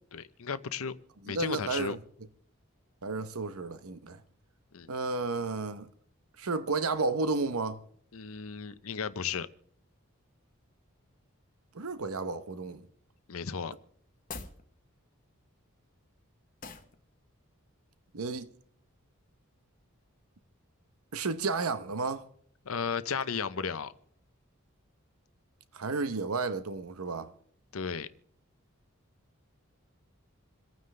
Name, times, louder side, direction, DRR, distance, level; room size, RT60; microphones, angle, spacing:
voice 1, 0.1-0.9 1.3-2.0 4.7-4.9 8.1-9.5 13.3-13.7 22.6-23.9 27.7-28.1, left 6 dB, 75° left, 0.7 m, -34 dB
voice 2, 1.2-2.0 3.0-4.2 4.9-5.9 6.4-7.8 11.7-12.9 18.1-18.5 21.1-22.3 25.7-27.3, right 3 dB, 80° right, 0.9 m, -32 dB
sound 1, 14.2-14.6 16.6-16.9, left 4 dB, 40° left, 1.0 m, -42 dB
27.5 x 9.4 x 3.3 m
head